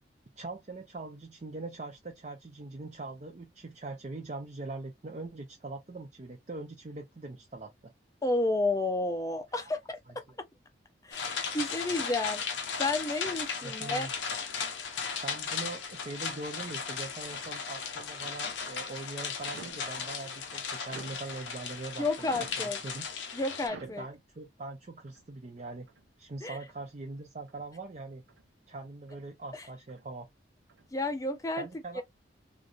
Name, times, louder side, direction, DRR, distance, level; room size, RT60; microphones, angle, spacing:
voice 1, 0.4-7.9 9.6-9.7 13.6-14.1 15.2-22.3 22.6-23.0 23.8-25.9 26.2-28.2 28.7-30.3 31.6-32.0, right 3 dB, 40° right, 0.5 m, -42 dB
voice 2, 8.2-10.0 11.0-12.4 12.8-14.1 14.5-14.7 22.0-22.8 23.3-24.1 26.4-26.6 29.5-29.7 30.9-31.7 31.9-32.0, left 2 dB, 20° left, 0.5 m, -31 dB
sound 1, 11.1-23.7, left 6 dB, 80° left, 0.6 m, -36 dB
sound 2, 18.4-18.8 19.5-19.9 20.8-21.3 22.2-22.7 23.6-24.1 25.1-25.3 25.9-26.1 26.7-26.9 27.5-27.7 28.3-28.5 29.1-29.3 29.9-30.1 30.7-30.9, right 4 dB, 85° right, 0.8 m, -50 dB
3.1 x 2.5 x 2.4 m
head